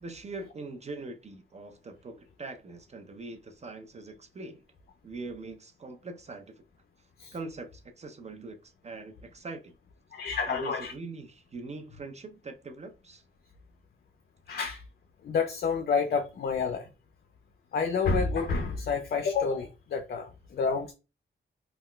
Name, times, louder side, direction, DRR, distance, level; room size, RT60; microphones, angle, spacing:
voice 1, 0.0-4.6 5.0-6.6 7.3-9.7 10.5-13.2, right 3 dB, 35° right, 0.4 m, -42 dB
voice 2, 10.1-10.9 14.5-14.8 15.2-16.9 17.7-20.9, left 5 dB, 50° left, 0.4 m, -29 dB
2.2 x 2.1 x 3.7 m
wide cardioid pair, 110°, 20 cm